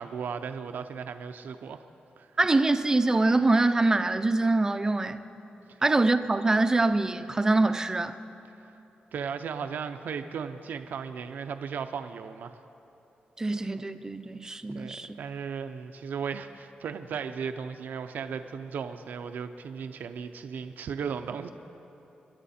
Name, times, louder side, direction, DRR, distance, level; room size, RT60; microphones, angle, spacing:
voice 1, 0.0-1.8 2.2-2.3 8.6-8.7 9.1-12.6 14.7-21.5, right 6 dB, 80° right, 8 dB, 0.6 m, -36 dB
voice 2, 2.4-5.2 5.8-8.1 13.4-15.2, right 2 dB, 20° right, 10 dB, 0.6 m, -24 dB
26.0 x 11.0 x 4.2 m, 3.0 s
wide cardioid pair, 125°, 3 cm